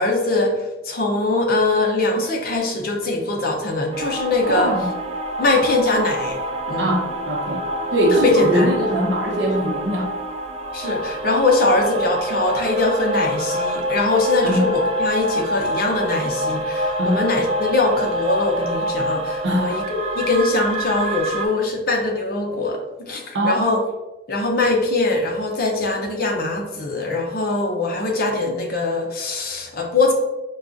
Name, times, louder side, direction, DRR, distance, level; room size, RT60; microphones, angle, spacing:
voice 1, 0.0-4.7 5.4-6.9 8.1-8.7 10.7-23.8 24.3-30.1, left 2 dB, 50° left, 0 dB, 0.6 m, -22 dB
sound 1, 3.9-21.5, equal, 35° right, 0.3 m, -26 dB
voice 2, 4.5-4.9 6.8-7.7 7.9-10.1 14.4-14.7 17.0-17.2 19.4-19.8 23.3-23.6, equal, 75° right, -1 dB, 0.7 m, -21 dB
4.6 x 2.3 x 2.5 m, 1.1 s
head